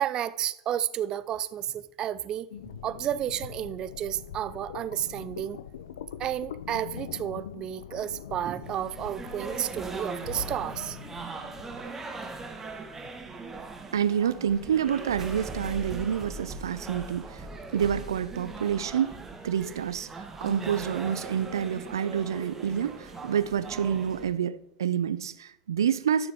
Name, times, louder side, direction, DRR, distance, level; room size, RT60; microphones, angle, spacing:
voice 1, 0.0-2.5 2.8-5.6 6.2-11.0, right 11 dB, 40° right, 0.6 m, -31 dB
sound 1, 2.5-11.9, left 9 dB, 75° left, 0.6 m, -43 dB
sound 2, 8.6-24.3, right 3 dB, 20° right, 1.6 m, -40 dB
voice 2, 13.9-17.5 17.7-20.1 20.4-26.3, right 8 dB, 80° right, 0.5 m, -28 dB
12.5 x 6.7 x 3.7 m
hypercardioid pair, 95°, 2 cm